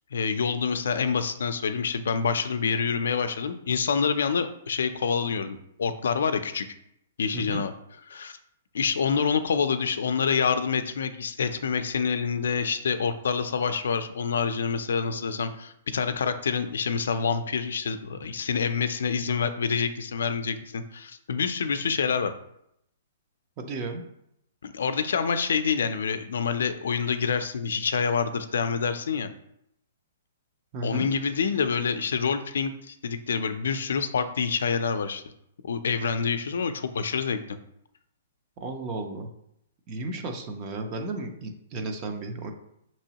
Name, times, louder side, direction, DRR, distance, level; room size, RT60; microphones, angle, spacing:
voice 1, 0.1-6.7 7.2-7.7 8.1-8.4 8.7-22.3 24.6-29.3 30.8-35.2 35.6-37.4, left 6 dB, 75° left, 10 dB, 0.4 m, -27 dB
voice 2, 23.6-24.1 30.7-31.1 38.6-39.3 39.9-42.5, right 2 dB, 20° right, 5 dB, 0.5 m, -34 dB
6.2 x 2.9 x 2.8 m, 0.78 s
hypercardioid pair, 175°, 0 cm